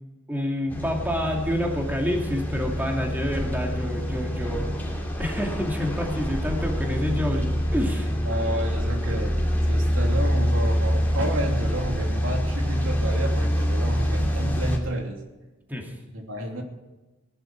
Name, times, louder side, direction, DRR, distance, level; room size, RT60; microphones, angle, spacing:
voice 1, 0.3-4.7 5.2-8.1 15.7-15.9, left 1 dB, 10° right, 0 dB, 2.5 m, -28 dB
sound 1, 0.7-14.8, equal, 10° left, 2.7 m, -26 dB
voice 2, 8.2-9.4 9.6-15.2 16.1-16.6, right 1 dB, 85° right, 2 dB, 2.9 m, -30 dB
18.5 x 11.5 x 4.7 m, 1.1 s
head